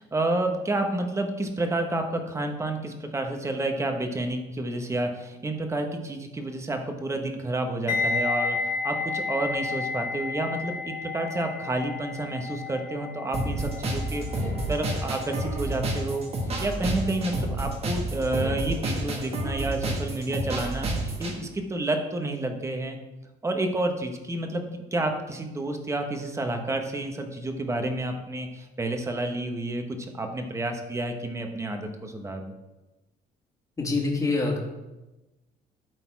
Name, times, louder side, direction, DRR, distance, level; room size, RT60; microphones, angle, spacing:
voice 1, 0.0-14.2 14.7-16.3 16.6-23.0 23.4-32.5, right 2 dB, 15° right, 4 dB, 1.2 m, -30 dB
sound 1, 7.9-16.8 17.1-17.4, left 4 dB, 50° left, 1.7 m, -32 dB
sound 2, 13.3-21.3, right 1 dB, 35° right, 1.7 m, -30 dB
voice 2, 33.8-34.6, left 3 dB, 20° left, -1 dB, 2.1 m, -25 dB
12.0 x 4.1 x 4.7 m, 1.1 s
cardioid pair, 110°, 17 cm